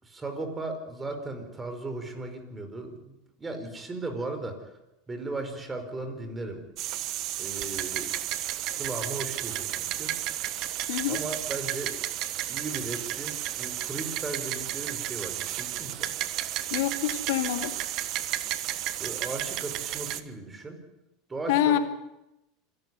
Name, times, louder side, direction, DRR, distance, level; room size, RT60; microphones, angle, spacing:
voice 1, 0.0-4.6 5.1-6.6 7.4-8.1 8.7-10.1 11.1-12.0 12.5-16.1 19.0-20.8 21.3-21.8, right 2 dB, 20° right, 7 dB, 5.0 m, -36 dB
sound 1, 6.8-20.2, right 13 dB, 55° right, 1.4 m, -32 dB
voice 2, 10.9-11.2 16.7-17.8 21.5-21.8, left 12 dB, 75° left, 7 dB, 2.5 m, -26 dB
27.0 x 12.0 x 9.6 m, 0.92 s
hypercardioid pair, 95°, 0 cm